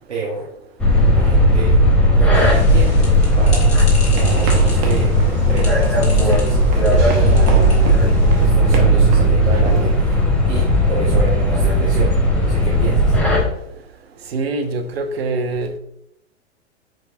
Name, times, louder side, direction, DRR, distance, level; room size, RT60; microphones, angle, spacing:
voice 1, 0.1-0.5 1.1-1.8 2.1-3.8 4.2-13.2, right 4 dB, 75° right, -5 dB, 1.2 m, -29 dB
sound 1, 0.8-13.4, equal, 5° left, 0.4 m, -15 dB
sound 2, 2.3-8.4, left 3 dB, 20° left, 1.5 m, -33 dB
sound 3, 4.0-10.0, right 4 dB, 30° right, 0.8 m, -30 dB
voice 2, 7.4-7.7 14.3-15.8, right 3 dB, 60° right, 7 dB, 0.7 m, -24 dB
4.8 x 4.4 x 2.5 m, 0.79 s
figure-of-eight pair, 100°, 34 cm